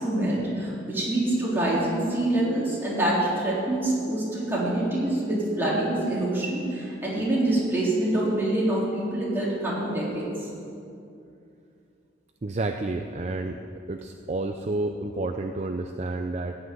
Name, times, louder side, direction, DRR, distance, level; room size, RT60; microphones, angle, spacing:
voice 1, 0.0-10.3, right 1 dB, 10° right, -7 dB, 3.5 m, -25 dB
voice 2, 12.4-13.6 13.9-16.6, right 2 dB, 35° right, 5 dB, 0.5 m, -30 dB
15.5 x 6.0 x 9.5 m, 2.6 s
head